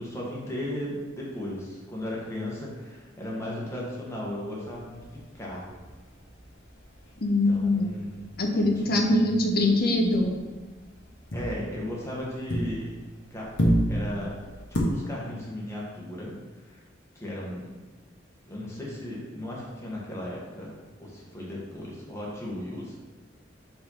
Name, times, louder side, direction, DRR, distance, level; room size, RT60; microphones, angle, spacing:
voice 1, 0.0-5.8 7.2-8.2 8.5-9.4 11.3-13.0 13.3-13.5 13.9-14.4 14.7-16.4 16.6-16.8 17.1-17.7 18.4-20.7 21.0-23.0, left 1 dB, 15° left, -5 dB, 1.7 m, -36 dB
sound 1, 4.7-8.4 8.7-9.0 9.3-13.1 13.4-14.8, equal, 75° left, 1.4 m, -31 dB
voice 2, 7.2-7.9 8.4-10.4, left 1 dB, 55° left, 3 dB, 0.9 m, -23 dB
5.5 x 4.3 x 5.8 m, 1.4 s
head